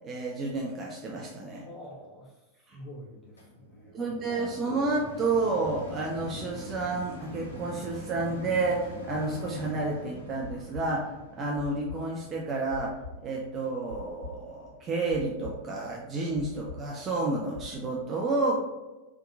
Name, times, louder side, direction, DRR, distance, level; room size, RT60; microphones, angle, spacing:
voice 1, 0.0-1.7 2.7-2.8 3.9-12.9 13.2-18.6, right 3 dB, 25° right, -2 dB, 0.3 m, -30 dB
voice 2, 1.5-2.4 2.7-4.2, equal, 10° left, -6 dB, 0.9 m, -47 dB
sound 1, 3.4-14.6 15.2-15.3, left 1 dB, 70° left, 0.5 m, -44 dB
sound 2, 10.4-17.7, left 3 dB, 75° right, 0.7 m, -44 dB
2.7 x 2.2 x 2.3 m, 1.1 s
figure-of-eight pair, 90°, 0 cm